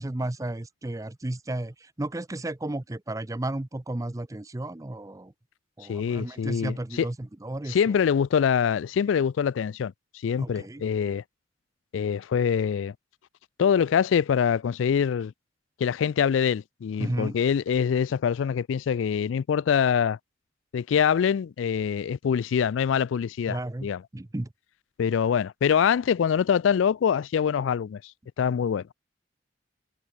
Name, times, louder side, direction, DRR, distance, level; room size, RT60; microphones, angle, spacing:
voice 1, 0.0-5.3 5.8-7.8 10.4-10.8 17.0-17.3 23.5-24.5, right 1 dB, 15° right, 0.5 m, -33 dB
voice 2, 5.9-7.0 7.7-9.9 10.2-11.2 11.9-12.9 13.6-15.3 15.8-20.2 20.7-24.0 25.0-28.1 28.4-28.8, left 7 dB, 90° left, 0.3 m, -24 dB
head